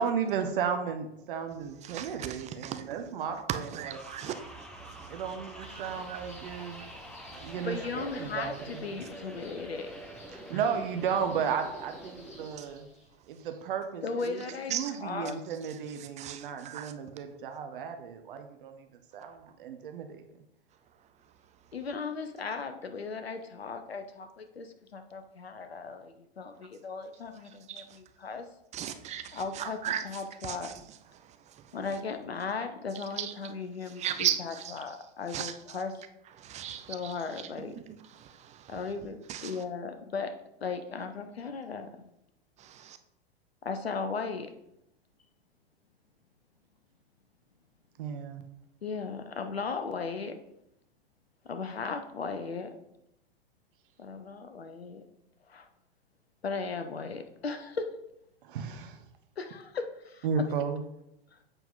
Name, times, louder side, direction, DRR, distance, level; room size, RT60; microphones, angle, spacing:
voice 1, 0.0-4.0 5.1-6.8 7.4-8.8 10.3-12.9 13.3-14.4 14.7-18.9 19.1-20.2 48.0-48.4 58.4-59.0 60.2-60.8, right 6 dB, 60° right, 0.9 m, -34 dB
voice 2, 1.8-2.9 3.5-5.2 5.7-6.2 7.3-7.5 12.6-12.7 14.7-14.9 16.0-16.9 27.7-27.9 28.7-30.7 31.2-31.8 33.2-33.3 33.9-34.8 35.3-35.5 36.4-37.1 37.8-38.8 39.3-39.6 42.6-43.0, right 10 dB, 25° right, 0.5 m, -37 dB
sound 1, 3.9-12.5, right 1 dB, 5° left, 0.9 m, -46 dB
sound 2, 5.6-13.2, left 2 dB, 20° left, 2.1 m, -54 dB
voice 3, 7.5-9.9 10.5-10.6 14.0-15.4 21.7-28.5 29.3-30.8 31.7-36.0 36.9-37.8 38.7-40.3 40.6-41.9 43.6-44.5 48.8-50.4 51.5-52.7 54.0-55.0 55.5-55.7 56.4-57.9 59.4-60.3 61.3-61.4, left 4 dB, 90° left, 0.7 m, -37 dB
7.9 x 4.5 x 3.8 m
figure-of-eight pair, 100°, 30 cm